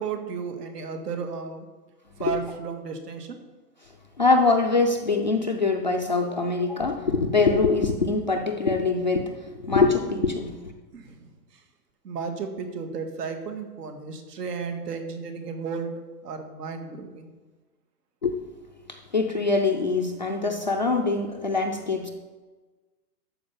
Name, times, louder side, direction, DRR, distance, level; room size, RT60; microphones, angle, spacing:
voice 1, 0.0-1.7 2.2-3.4 10.9-11.6 12.0-15.9 16.2-17.3, right 5 dB, 70° right, 5 dB, 2.0 m, -33 dB
voice 2, 4.2-10.5 18.2-18.4 18.9-22.1, left 3 dB, 30° left, 1 dB, 0.4 m, -23 dB
13.0 x 4.7 x 7.1 m, 1.3 s
hypercardioid pair, 165°, 49 cm